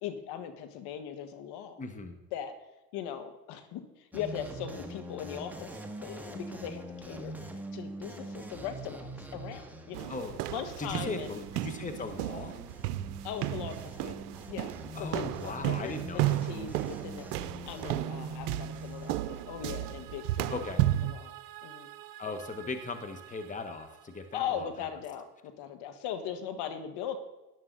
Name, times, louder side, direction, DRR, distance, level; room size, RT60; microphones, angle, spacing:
voice 1, 0.0-1.8 2.3-2.5 2.9-7.3 7.7-10.1 10.5-11.4 13.2-20.6 21.1-21.3 21.6-21.9 22.2-22.4 24.3-27.2, left 9 dB, 55° left, 8 dB, 1.7 m, -39 dB
voice 2, 1.8-2.2 10.1-10.5 10.8-12.5 14.9-16.4 20.5-20.8 22.2-24.9, left 3 dB, 15° left, 7 dB, 1.3 m, -38 dB
sound 1, 4.1-19.2, right 1 dB, 5° right, 1.6 m, -44 dB
sound 2, 9.9-21.1, right 15 dB, 70° right, 0.8 m, -33 dB
sound 3, 18.1-25.0, right 14 dB, 45° right, 1.4 m, -51 dB
13.0 x 11.0 x 4.0 m, 1.0 s
hypercardioid pair, 95°, 47 cm